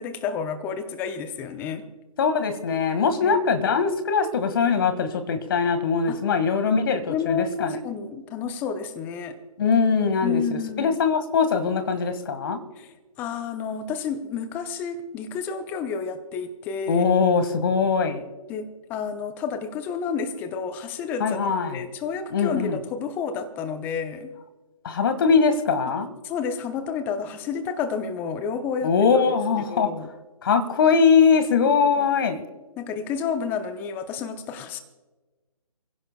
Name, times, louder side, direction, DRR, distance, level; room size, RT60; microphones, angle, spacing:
voice 1, 0.0-1.9 3.2-3.4 6.1-6.2 7.1-9.4 10.2-11.0 12.8-12.9 13.2-17.0 18.5-24.3 26.2-28.9 29.7-30.1 32.0-32.1 32.8-34.8, left 6 dB, 10° left, 10 dB, 0.7 m, -30 dB
voice 2, 2.2-7.8 9.6-12.6 16.9-18.2 21.2-21.8 22.3-22.8 24.8-26.1 28.8-29.9 30.4-32.4, left 5 dB, 35° left, 8 dB, 1.7 m, -21 dB
27.5 x 16.0 x 2.3 m, 1.2 s
figure-of-eight pair, 145°, 19 cm